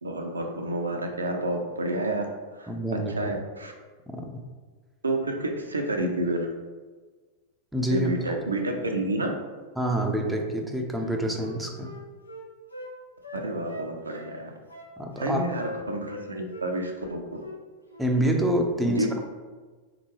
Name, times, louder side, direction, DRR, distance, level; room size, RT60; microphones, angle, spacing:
voice 1, 0.0-2.3 2.5-2.7 3.1-3.7 5.0-6.5 7.9-9.3 13.3-14.5 15.2-17.2 18.9-19.1, right 1 dB, 75° right, 3 dB, 0.5 m, -29 dB
voice 2, 2.7-3.3 4.1-4.4 7.7-8.4 9.8-11.9 15.0-15.4 18.0-19.1, right 1 dB, 5° right, 1 dB, 0.5 m, -27 dB
Wind instrument woodwind instrument, 11.0-12.9 13.2-14.3 14.7-15.3 15.6-16.2 16.5-16.7 17.0-17.6 17.9-18.1, equal, 85° left, 0.6 m, -41 dB
3.9 x 3.7 x 3.0 m, 1.4 s
figure-of-eight pair, 90°, 0 cm